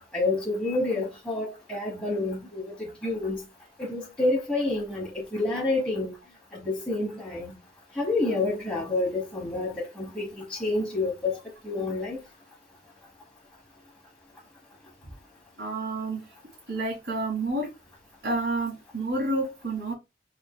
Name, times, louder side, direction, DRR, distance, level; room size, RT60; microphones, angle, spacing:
voice 1, 0.1-3.4 3.8-6.1 6.5-7.5 7.9-11.4 11.6-12.2, left 2 dB, 5° left, 1.2 m, -28 dB
voice 2, 15.6-16.3 16.7-17.7 18.2-19.9, right 2 dB, 75° right, 2.0 m, -29 dB
4.8 x 3.6 x 2.2 m
head